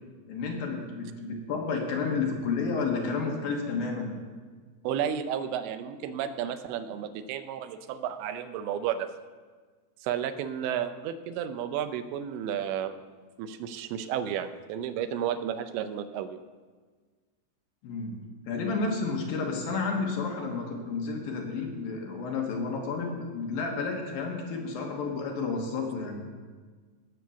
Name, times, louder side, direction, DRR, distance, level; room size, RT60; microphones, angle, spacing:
voice 1, 0.3-4.2 17.8-18.2 18.5-26.2, left 4 dB, 65° left, 1 dB, 2.8 m, -31 dB
voice 2, 4.8-9.1 10.0-13.0 13.4-16.4, right 9 dB, 85° right, 10 dB, 3.0 m, -32 dB
18.0 x 6.4 x 6.9 m, 1.5 s
omnidirectional pair, 5.0 m